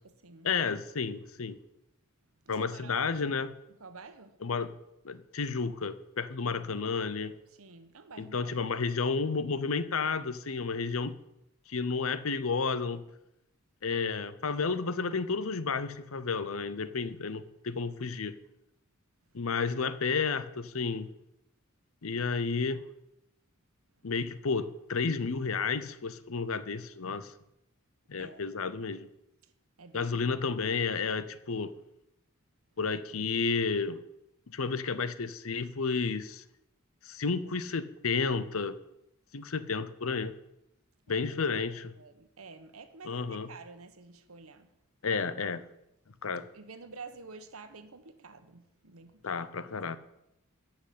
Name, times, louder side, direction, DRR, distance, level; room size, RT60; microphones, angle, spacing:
voice 1, 0.4-1.6 2.5-3.5 4.4-4.7 5.0-7.3 8.2-11.2 11.7-13.0 13.8-18.3 19.3-21.1 22.0-22.8 24.0-27.3 28.1-29.1 29.9-31.7 32.8-34.0 34.5-36.4 37.0-38.8 39.3-40.3 41.1-41.9 43.0-43.5 45.0-45.6 46.2-46.5 49.2-50.0, left 4 dB, 75° left, 0.8 m, -31 dB
voice 2, 2.5-3.3 3.8-4.3 6.4-6.7 7.6-8.8 28.2-28.4 29.8-30.4 41.1-41.3 42.0-44.7 46.5-49.2, right 4 dB, 90° right, 1.2 m, -49 dB
13.0 x 5.9 x 8.6 m
head